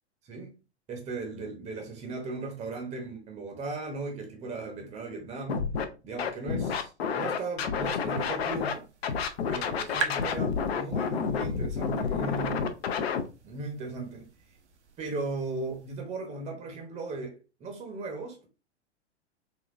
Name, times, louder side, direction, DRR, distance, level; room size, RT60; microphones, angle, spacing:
voice 1, 0.9-5.6 6.0-8.8 9.5-12.7 13.4-14.3 15.0-18.5, right 3 dB, 20° right, 0.7 m, -37 dB
Scratching (performance technique), 5.5-5.8 6.2-8.7 9.0-13.2, left 6 dB, 65° left, 0.6 m, -29 dB
sound 1, 8.1-16.0, right 5 dB, 80° right, 0.7 m, -43 dB
3.6 x 2.3 x 2.5 m
figure-of-eight pair, 100°, 34 cm